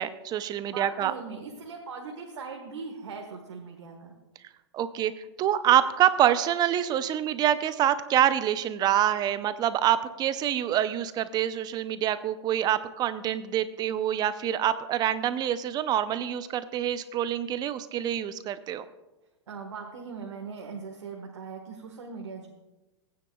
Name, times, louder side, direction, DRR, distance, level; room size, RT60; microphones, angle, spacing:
voice 1, 0.0-1.1 4.7-5.1 5.4-18.8, right 11 dB, 30° right, 13 dB, 0.6 m, -26 dB
voice 2, 0.7-4.1 19.5-22.5, right 5 dB, 80° right, 1 dB, 1.5 m, -40 dB
19.0 x 9.4 x 2.3 m, 1.1 s
hypercardioid pair, 120°, 15 cm